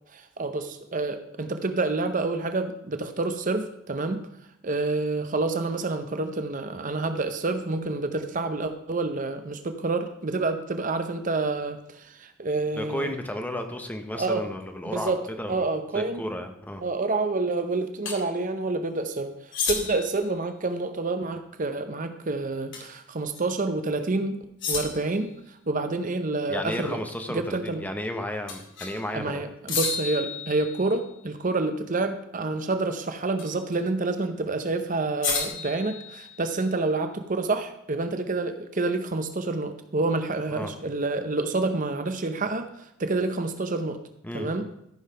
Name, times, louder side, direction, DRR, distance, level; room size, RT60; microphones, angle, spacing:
voice 1, 0.1-4.2 4.6-13.1 14.1-14.4 14.9-15.2 15.5-16.2 16.8-24.4 24.7-27.0 27.3-27.8 29.1-44.0 44.3-44.7, right 3 dB, 40° right, 8 dB, 0.7 m, -28 dB
voice 2, 12.7-15.6 15.9-16.8 26.5-29.4 40.5-40.7 44.2-44.5, left 1 dB, 10° left, 5 dB, 0.9 m, -33 dB
sound 1, 18.1-18.2 19.5-20.2 22.7-23.0 23.3-23.4 24.6-25.2 28.5-29.0 29.7-31.1 33.4-33.8 35.2-36.6, left 5 dB, 60° left, 2.4 m, -31 dB
14.0 x 5.5 x 5.6 m, 0.79 s
head